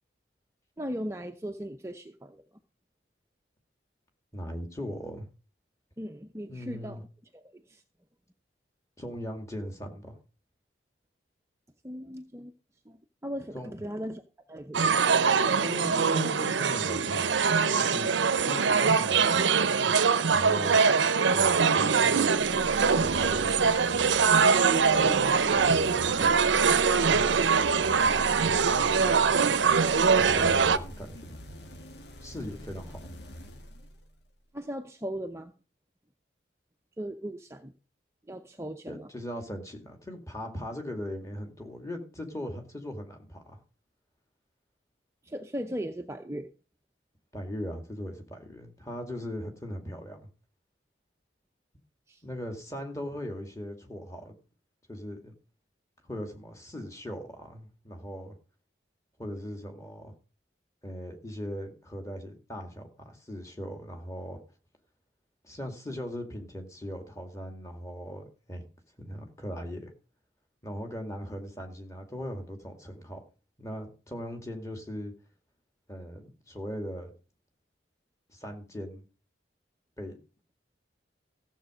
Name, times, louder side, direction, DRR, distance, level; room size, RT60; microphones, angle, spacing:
voice 1, 0.8-2.4 6.0-7.1 7.3-7.8 11.8-12.5 12.9-14.2 14.5-15.0 34.5-35.5 37.0-37.7 38.3-39.1 45.2-46.5 52.1-52.2, equal, 15° right, 5 dB, 0.6 m, -38 dB
voice 2, 4.3-5.3 6.5-7.0 9.0-10.2 13.5-13.7 15.6-18.1 18.4-19.9 20.3-20.8 21.3-22.3 23.0-24.0 24.9-26.4 27.1-27.6 28.4-29.6 30.2-31.4 32.2-33.0 38.9-43.6 47.3-50.3 52.2-54.4 54.9-55.3 56.0-58.4 59.2-60.1 60.8-64.4 65.4-68.6 69.0-69.9 70.6-73.2 73.6-75.1 75.9-77.1 78.3-79.0 80.0-80.2, equal, 15° left, 4 dB, 2.2 m, -39 dB
sound 1, 14.7-30.8, right 5 dB, 80° right, 0.7 m, -23 dB
sound 2, 22.3-34.3, equal, 65° left, 1.6 m, -42 dB
14.5 x 7.6 x 5.0 m, 0.36 s
head